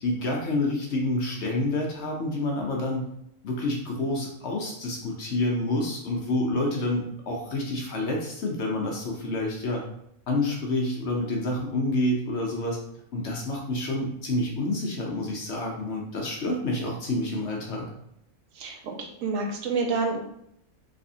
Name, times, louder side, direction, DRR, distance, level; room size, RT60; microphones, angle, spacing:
voice 1, 0.0-3.0 3.4-9.8 10.3-12.8 13.1-17.9, left 2 dB, 60° left, -1 dB, 0.8 m, -28 dB
voice 2, 18.6-20.3, right 4 dB, 70° right, 2 dB, 1.0 m, -28 dB
3.3 x 3.3 x 2.7 m, 0.74 s
omnidirectional pair, 1.5 m